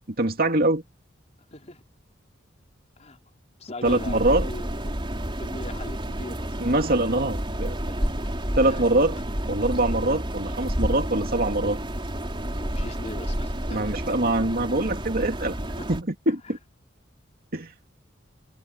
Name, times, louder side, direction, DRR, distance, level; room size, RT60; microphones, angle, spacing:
voice 1, 0.2-0.8 3.8-4.5 6.6-7.8 8.5-9.2 9.5-11.8 13.7-15.6 15.9-16.6 17.5-17.7, right 2 dB, 50° right, 2.4 m, -23 dB
voice 2, 1.5-1.8 3.0-3.2 3.6-4.7 5.2-6.6 7.8-8.3 8.6-8.8 12.5-13.9 15.8-15.9, left 1 dB, 35° left, 4.3 m, -40 dB
sound 1, 3.8-16.0, equal, 25° right, 4.0 m, -30 dB
head